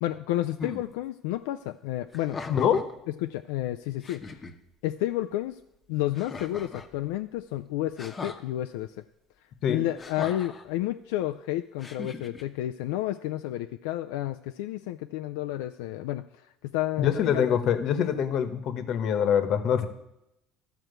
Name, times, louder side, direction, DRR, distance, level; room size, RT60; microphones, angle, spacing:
voice 1, 0.0-2.4 3.2-4.4 4.8-5.6 5.9-9.0 9.7-17.6, left 14 dB, 90° left, 7 dB, 0.4 m, -31 dB
sound 1, 0.6-0.9 2.1-2.9 3.6-3.7 4.0-4.5 6.1-6.9 8.0-8.4 10.0-10.6 11.8-12.4, left 4 dB, 25° left, 0.9 m, -39 dB
voice 2, 2.5-2.8 9.6-9.8 17.0-19.9, left 8 dB, 55° left, 10 dB, 1.1 m, -24 dB
12.5 x 4.5 x 7.9 m, 0.85 s
supercardioid pair, 115°, 0 cm